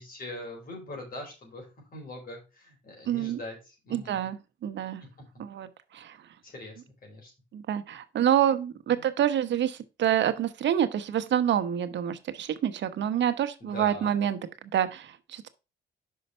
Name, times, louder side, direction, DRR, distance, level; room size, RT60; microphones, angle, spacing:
voice 1, 0.0-1.7 1.9-4.2 5.0-5.3 6.4-7.3 8.9-9.1 13.6-14.1, left 1 dB, 45° left, 4.3 m, -42 dB
voice 2, 3.1-3.4 3.9-5.0 5.4-5.7 5.9-6.2 7.5-14.4 14.7-15.5, right 10 dB, 65° right, 0.9 m, -27 dB
5.7 x 5.2 x 5.4 m
cardioid pair, 90°, 20 cm